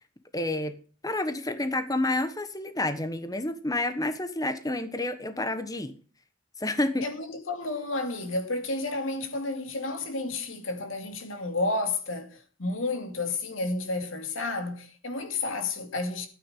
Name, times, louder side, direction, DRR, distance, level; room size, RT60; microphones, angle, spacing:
voice 1, 0.3-0.8 1.0-5.9 6.6-7.1, left 2 dB, 20° left, 1.2 m, -29 dB
voice 2, 7.0-16.3, left 2 dB, 80° left, 2.5 m, -31 dB
12.5 x 9.5 x 5.5 m
head